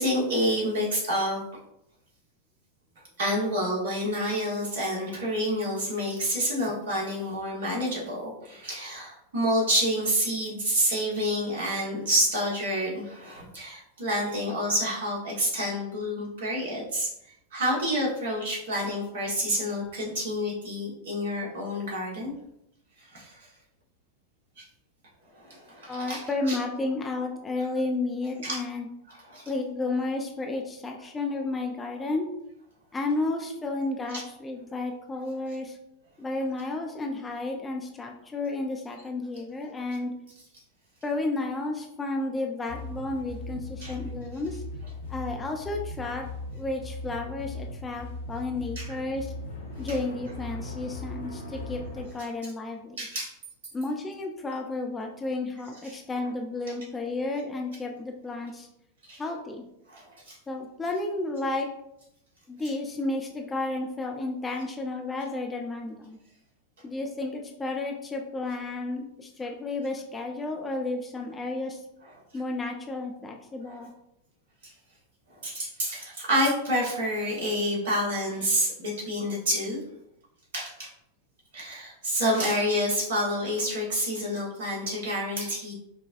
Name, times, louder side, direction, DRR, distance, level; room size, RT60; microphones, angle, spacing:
voice 1, 0.0-1.4 3.2-17.1 17.5-22.3 23.0-23.5 24.6-24.7 25.3-26.6 28.4-28.6 29.3-29.4 34.1-34.2 43.8-43.9 48.8-49.0 53.0-53.3 55.8-56.0 59.1-59.2 59.9-60.4 73.6-73.8 74.6-74.7 75.3-79.8 80.5-80.9 81.5-85.7, equal, 60° right, -4 dB, 1.3 m, -28 dB
voice 2, 25.9-28.9 29.5-32.3 32.9-35.8 36.2-40.1 41.0-44.6 45.1-46.2 46.5-49.3 49.8-53.1 53.7-58.7 59.2-59.6 60.5-61.7 62.5-66.2 66.8-71.8 72.3-73.9, left 2 dB, 15° left, 1 dB, 0.4 m, -32 dB
sound 1, 42.7-52.0, left 2 dB, 70° left, 0.7 m, -38 dB
4.9 x 2.3 x 2.5 m, 0.80 s
figure-of-eight pair, 90°, 0 cm